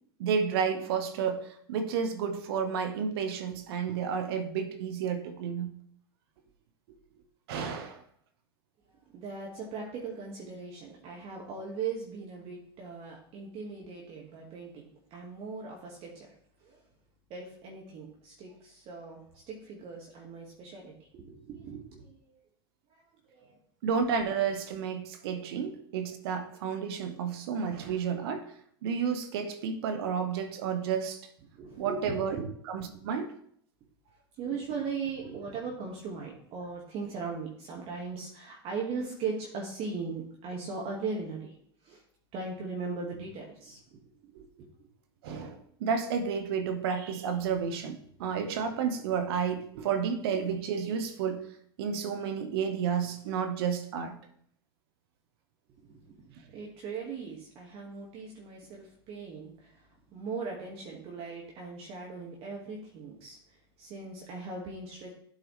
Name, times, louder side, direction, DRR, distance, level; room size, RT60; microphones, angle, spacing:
voice 1, 0.2-5.7 7.5-8.0 23.8-28.4 28.8-31.2 31.8-32.4 32.7-33.3 44.3-44.4 45.2-51.5 51.8-54.1, right 6 dB, 65° right, 8 dB, 1.2 m, -31 dB
voice 2, 8.9-16.3 16.6-16.8 17.3-22.4 22.9-23.6 31.5-32.0 32.3-32.5 32.9-33.1 34.4-41.6 41.8-42.0 42.3-44.0 44.6-44.9 55.8-65.1, right 4 dB, 45° right, -2 dB, 1.9 m, -39 dB
11.5 x 4.7 x 3.3 m, 0.65 s
hypercardioid pair, 90°, 14 cm